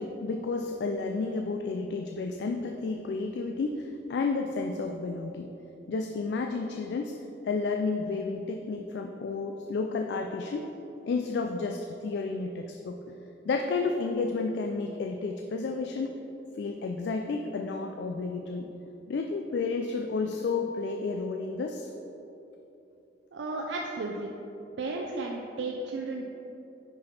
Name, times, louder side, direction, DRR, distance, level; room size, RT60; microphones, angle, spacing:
voice 1, 0.0-5.5 5.9-7.2 7.4-10.7 11.1-13.0 13.4-16.2 16.6-18.7 19.1-21.9 23.5-23.6 25.0-25.2, left 4 dB, 65° left, 4 dB, 0.3 m, -31 dB
voice 2, 23.3-24.3 24.8-26.2, right 3 dB, 80° right, 0 dB, 0.4 m, -34 dB
6.0 x 5.1 x 4.2 m, 3.0 s
head